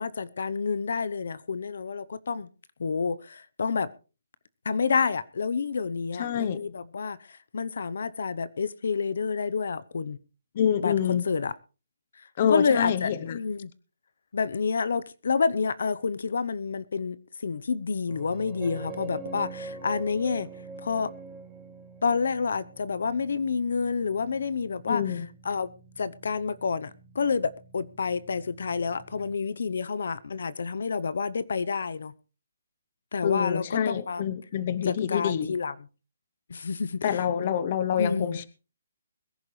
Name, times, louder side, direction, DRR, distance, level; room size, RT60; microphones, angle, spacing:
voice 1, 0.0-2.5 2.8-3.9 4.6-10.2 10.8-11.5 12.5-13.7 14.3-20.5 20.8-21.1 22.0-25.1 25.4-25.7 26.0-32.1 33.1-34.2 34.8-35.7 36.5-37.2 38.0-38.4, left 5 dB, 65° left, 17 dB, 0.8 m, -29 dB
voice 2, 6.2-6.6 10.5-11.3 12.4-13.4 24.9-25.3 33.2-35.5 37.0-38.5, left 9 dB, 30° left, 16 dB, 0.8 m, -27 dB
sound 1, 18.1-29.3, right 3 dB, 10° right, 1.4 m, -45 dB
22.0 x 11.0 x 3.2 m, 0.33 s
hypercardioid pair, 175°, 0 cm